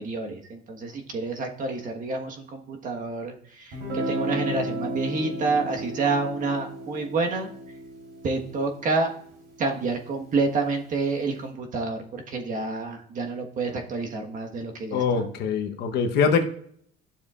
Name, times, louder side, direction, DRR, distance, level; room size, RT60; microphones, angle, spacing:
voice 1, 0.0-7.5 8.2-9.1 9.6-15.2, right 3 dB, 50° right, 3 dB, 1.4 m, -28 dB
Guitar, 3.7-9.5, right 1 dB, 80° right, 3.5 m, -34 dB
voice 2, 14.9-16.4, left 5 dB, 75° left, 5 dB, 1.0 m, -23 dB
12.0 x 7.1 x 2.5 m, 0.64 s
cardioid pair, 110°, 17 cm